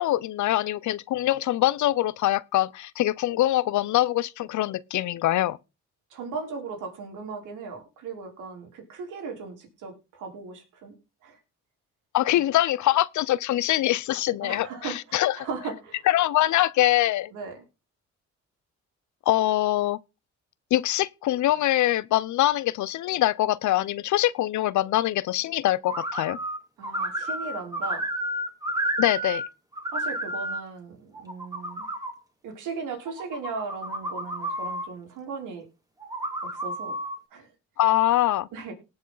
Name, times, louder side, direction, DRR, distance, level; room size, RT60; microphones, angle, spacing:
voice 1, 0.0-5.6 12.1-15.4 16.1-17.3 19.3-20.0 20.7-26.4 29.0-29.4 37.8-38.5, left 14 dB, 75° left, 0.7 m, -23 dB
voice 2, 6.1-10.9 11.2-11.4 14.4-16.0 17.3-17.6 26.8-28.1 29.9-31.8 32.4-35.7 36.5-36.9 37.3-37.5 38.5-38.7, right 4 dB, 85° right, 3.9 m, -37 dB
sound 1, 25.9-26.6 26.8-29.5 29.7-30.6 31.1-32.1 33.1-34.9 36.0-37.2, right 1 dB, 10° right, 2.6 m, -31 dB
19.0 x 6.3 x 4.0 m
cardioid pair, 90°, 30 cm